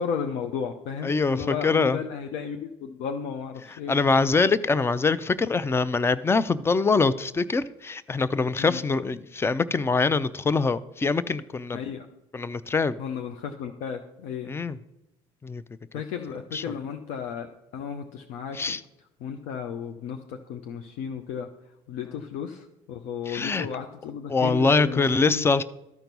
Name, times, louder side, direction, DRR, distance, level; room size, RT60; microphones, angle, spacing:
voice 1, 0.0-3.9 8.6-8.8 11.7-12.1 13.0-14.5 15.9-17.5 17.7-18.8 19.2-21.5 21.9-25.5, left 7 dB, 75° left, 7 dB, 0.7 m, -34 dB
voice 2, 1.0-2.0 3.9-11.8 12.3-13.0 14.5-14.8 15.4-15.6 16.5-16.6 18.5-18.8 23.3-23.7 24.3-25.6, left 4 dB, 20° left, 17 dB, 0.5 m, -24 dB
13.0 x 4.5 x 5.3 m, 0.89 s
supercardioid pair, 80°, 12 cm